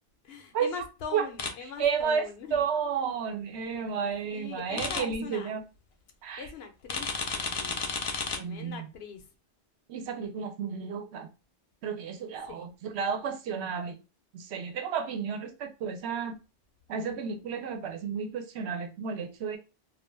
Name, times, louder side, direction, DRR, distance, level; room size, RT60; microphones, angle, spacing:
voice 1, 0.2-2.6 4.2-5.6 6.4-7.9 8.3-9.2 12.5-12.7, left 6 dB, 75° left, 0.8 m, -42 dB
sound 1, 1.4-1.5 4.8-5.0 6.9-8.4, left 4 dB, 55° left, 0.4 m, -32 dB
voice 2, 1.6-5.6 6.2-6.5 8.4-8.9 9.9-11.3 11.8-14.0 14.3-16.4 16.9-19.6, right 6 dB, 85° right, 0.9 m, -32 dB
2.3 x 2.2 x 3.1 m
omnidirectional pair, 1.1 m